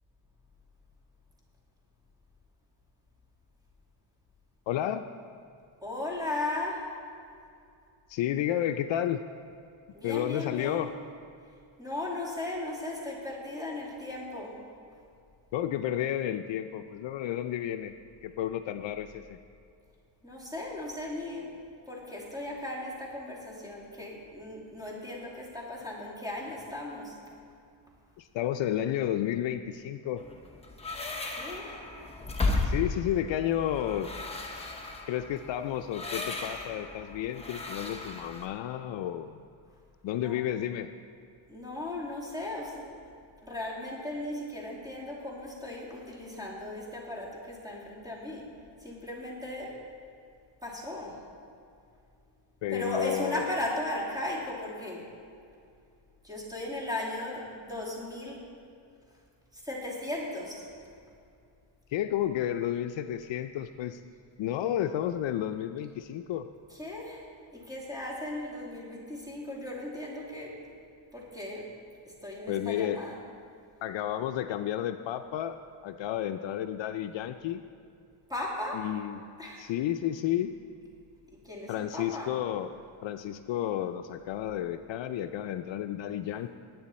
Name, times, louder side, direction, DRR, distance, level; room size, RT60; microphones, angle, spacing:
voice 1, 4.7-5.0 8.1-9.2 10.0-10.9 15.5-18.0 18.2-19.4 28.2-30.2 32.6-34.1 35.1-39.4 40.0-40.9 52.6-53.5 61.9-64.0 64.4-66.5 72.5-73.0 73.8-77.6 78.7-79.2 79.6-80.6 81.7-82.7 83.0-86.5, left 11 dB, 65° left, 9 dB, 0.6 m, -31 dB
voice 2, 5.8-7.0 9.9-10.8 11.8-14.7 20.2-21.6 21.9-27.3 31.2-31.8 40.1-40.4 41.5-43.0 43.4-49.8 50.6-51.2 52.7-55.2 56.2-58.5 59.5-60.7 66.7-70.8 71.1-71.7 72.1-73.2 78.3-78.9 79.4-79.7 81.3-82.4, left 1 dB, 10° right, -5 dB, 2.7 m, -37 dB
sound 1, 30.2-38.5, left 3 dB, 15° left, 1.0 m, -35 dB
19.0 x 8.9 x 4.2 m, 2.5 s
cardioid pair, 170°, 48 cm